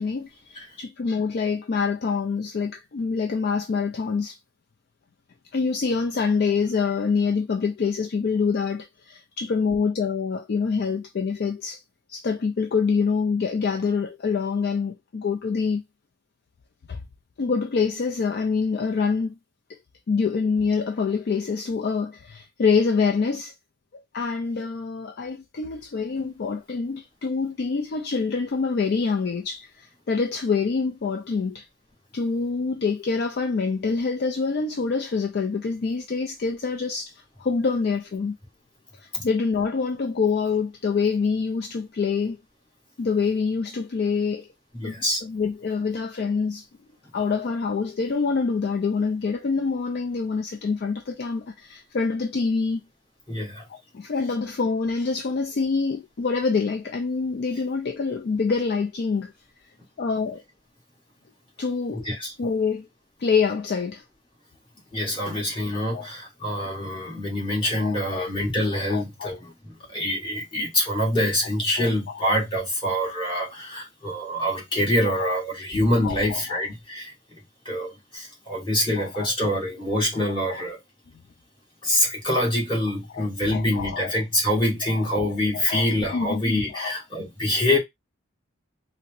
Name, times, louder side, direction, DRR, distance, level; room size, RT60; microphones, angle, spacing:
voice 1, 0.0-4.4 5.5-11.8 12.1-15.8 16.9-17.0 17.4-19.4 19.7-19.8 20.1-23.5 23.9-31.7 32.1-38.4 38.9-42.4 43.0-44.5 44.8-46.7 47.1-52.8 53.7-59.3 60.0-60.4 61.6-62.1 62.4-62.9 63.2-64.0 65.9-66.1 67.7-68.3 68.7-69.3 71.8-72.3 75.1-75.4 76.0-76.6 79.0-79.3 80.3-80.6 83.1-84.2 84.9-86.4 86.7-87.0, left 5 dB, 50° left, 0.4 m, -26 dB
voice 2, 44.7-45.2 53.3-53.7 61.9-62.3 64.9-77.4 77.6-80.8 81.8-87.8, left 1 dB, 25° left, 1.5 m, -25 dB
4.2 x 2.0 x 2.6 m
head